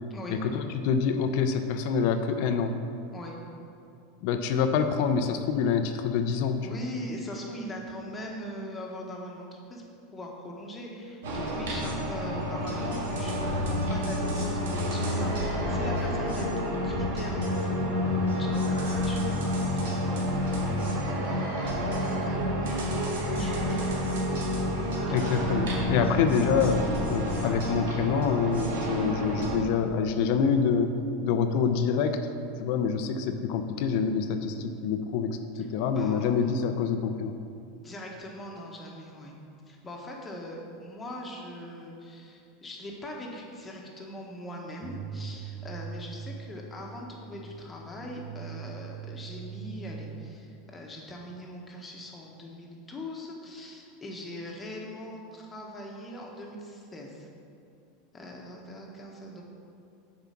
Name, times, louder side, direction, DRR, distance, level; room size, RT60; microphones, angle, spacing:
voice 1, 0.3-2.8 4.2-6.8 25.1-32.3 32.6-37.3, left 6 dB, 60° left, 8 dB, 0.6 m, -26 dB
voice 2, 6.6-9.8 10.1-19.6 20.5-24.2 24.9-25.2 35.8-36.4 37.7-39.4 39.7-57.3 58.1-59.5, left 1 dB, 20° left, -1 dB, 1.4 m, -41 dB
sound 1, 11.2-29.6, equal, 85° right, 1.8 m, -29 dB
sound 2, 44.8-50.4, right 6 dB, 40° right, 0.4 m, -41 dB
6.9 x 4.9 x 5.8 m, 2.5 s
supercardioid pair, 120°, 0 cm